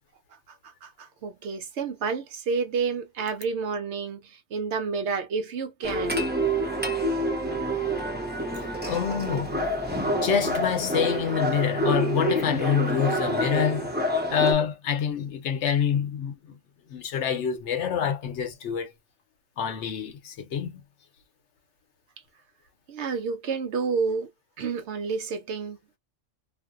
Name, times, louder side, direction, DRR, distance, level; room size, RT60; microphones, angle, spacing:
voice 1, 0.5-6.3 7.0-7.1 22.9-24.3 24.6-26.0, right 5 dB, 70° right, 0.9 m, -30 dB
sound 1, 5.8-14.5, right 1 dB, 15° right, 0.4 m, -27 dB
voice 2, 8.9-13.9 14.3-16.6 16.9-18.9 19.6-20.8, left 7 dB, 70° left, 1.0 m, -27 dB
2.5 x 2.1 x 2.3 m
omnidirectional pair, 1.3 m